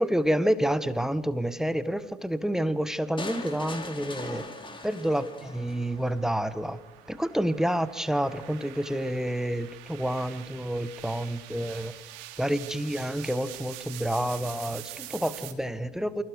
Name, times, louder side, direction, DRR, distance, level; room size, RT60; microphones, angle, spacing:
voice 1, 0.0-4.5 4.8-6.8 7.1-11.9 12.4-16.2, equal, ahead, 14 dB, 1.6 m, -28 dB
sound 1, 3.2-6.2, left 2 dB, 15° left, 4.3 m, -40 dB
sound 2, 3.8-15.5, right 15 dB, 50° right, 3.1 m, -46 dB
29.0 x 27.0 x 6.1 m, 1.2 s
figure-of-eight pair, 70°, 31 cm